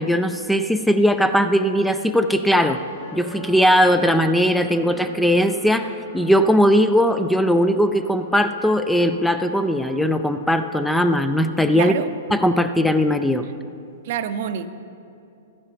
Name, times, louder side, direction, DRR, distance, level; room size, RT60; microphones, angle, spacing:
voice 1, 0.0-2.8 3.1-11.9 12.3-13.4, equal, ahead, 9 dB, 0.3 m, -19 dB
sound 1, 2.4-12.6, left 2 dB, 85° left, 2.4 m, -42 dB
voice 2, 11.7-12.1 14.0-14.7, right 9 dB, 55° right, 11 dB, 0.5 m, -26 dB
14.0 x 11.0 x 3.4 m, 2.6 s
hypercardioid pair, 140°, 0 cm